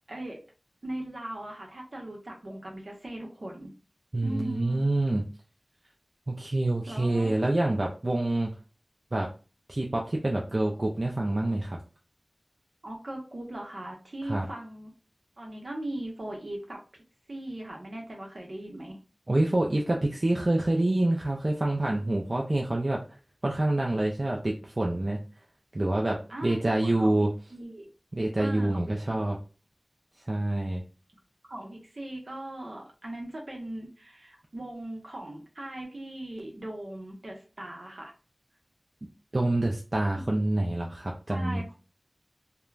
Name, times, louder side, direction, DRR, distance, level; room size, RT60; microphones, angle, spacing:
voice 1, 0.1-0.4 0.8-3.7 4.2-4.8 6.9-7.4 12.8-14.9 15.4-16.8 17.3-19.0 26.3-27.9 28.4-29.3 31.4-38.1 40.1-40.3 41.3-41.7, right 1 dB, 70° right, 0 dB, 0.8 m, -39 dB
voice 2, 4.1-5.2 6.3-8.5 9.1-9.3 9.7-11.8 14.3-14.5 19.3-23.0 23.4-25.2 25.7-27.3 28.1-29.4 30.3-30.8 39.3-41.7, right 1 dB, 50° right, -1 dB, 0.4 m, -27 dB
2.3 x 2.1 x 3.1 m, 0.35 s
wide cardioid pair, 55°, 0 cm